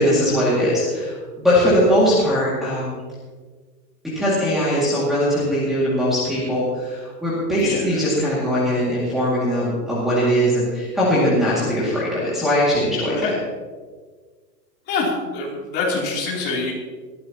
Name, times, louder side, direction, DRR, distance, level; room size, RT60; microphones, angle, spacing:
voice 1, 0.0-3.0 4.2-13.3, equal, ahead, -11 dB, 2.2 m, -20 dB
voice 2, 14.9-16.7, left 3 dB, 20° left, -4 dB, 3.3 m, -25 dB
20.5 x 14.5 x 3.0 m, 1.5 s
supercardioid pair, 175°, 49 cm